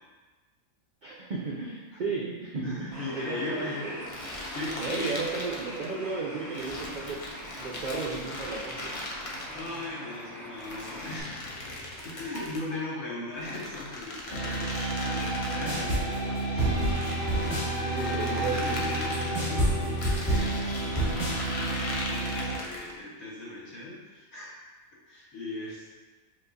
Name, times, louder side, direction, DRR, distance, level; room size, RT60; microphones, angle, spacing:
voice 1, 1.0-4.0 4.8-7.2 7.6-8.9 12.3-12.4 12.7-12.8 17.9-18.9, right 4 dB, 80° right, -4 dB, 0.4 m, -34 dB
voice 2, 2.6-4.0 4.5-5.1 8.7-8.9 9.2-11.7 12.0-16.9 17.4-24.5 25.1-25.9, left 2 dB, 75° left, -7 dB, 1.6 m, -39 dB
Bird, 2.9-11.2, equal, ahead, 0.8 m, -43 dB
sound 1, 4.0-5.9 6.5-9.9 10.6-12.7 13.3-16.0 16.7-19.4 20.0-23.0, left 1 dB, 55° left, 0.3 m, -39 dB
sound 2, 14.3-22.6, right 1 dB, 30° left, 1.4 m, -29 dB
7.1 x 2.4 x 2.6 m, 1.3 s
omnidirectional pair, 1.5 m